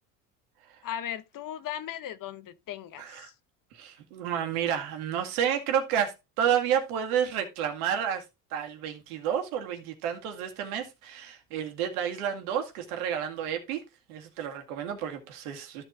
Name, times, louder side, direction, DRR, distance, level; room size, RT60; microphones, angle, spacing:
voice 1, 0.8-3.3, left 10 dB, 50° left, 1.0 m, -37 dB
voice 2, 3.0-3.3 3.7-8.2 8.5-13.8 14.1-15.8, right 9 dB, 85° right, 2.0 m, -30 dB
13.0 x 4.5 x 3.8 m
supercardioid pair, 80°, 43 cm